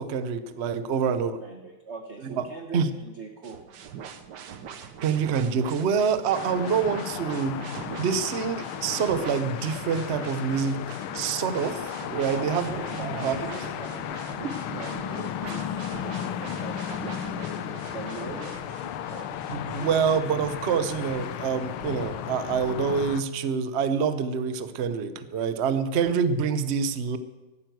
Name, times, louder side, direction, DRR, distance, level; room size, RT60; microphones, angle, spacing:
voice 1, 0.0-1.3 2.2-2.4 2.7-2.9 5.0-7.6 8.0-12.7 13.0-13.5 19.5-27.2, right 6 dB, 85° right, 12 dB, 0.5 m, -26 dB
voice 2, 0.9-3.7 12.3-19.9, right 4 dB, 40° right, 4 dB, 1.1 m, -42 dB
sound 1, 3.4-20.8, right 7 dB, 60° right, 1.4 m, -43 dB
sound 2, 6.3-23.2, left 10 dB, 75° left, 1.5 m, -35 dB
13.0 x 9.2 x 9.2 m, 1.1 s
omnidirectional pair, 2.4 m